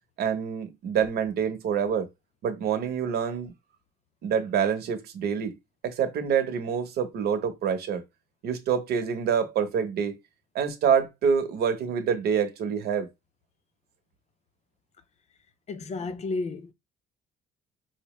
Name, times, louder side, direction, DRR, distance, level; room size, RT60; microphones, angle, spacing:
voice 1, 0.2-2.1 2.4-3.5 4.2-5.6 5.8-8.0 8.4-10.2 10.5-13.1, right 7 dB, 70° right, 0.9 m, -26 dB
voice 2, 15.7-16.7, left 3 dB, 40° left, 0.5 m, -32 dB
4.4 x 2.1 x 3.1 m
cardioid pair, 110°, 17 cm